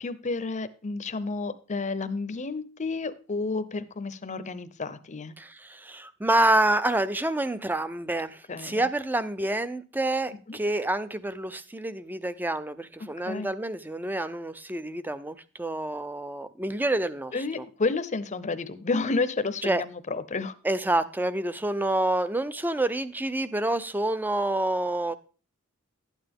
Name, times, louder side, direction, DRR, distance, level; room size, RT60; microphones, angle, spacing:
voice 1, 0.0-5.4 8.5-8.8 10.5-10.6 13.0-13.5 17.3-20.5, left 3 dB, 35° left, 0.7 m, -31 dB
voice 2, 5.4-17.6 19.6-19.8 20.6-25.1, right 1 dB, 10° right, 0.5 m, -28 dB
12.0 x 9.0 x 3.6 m
head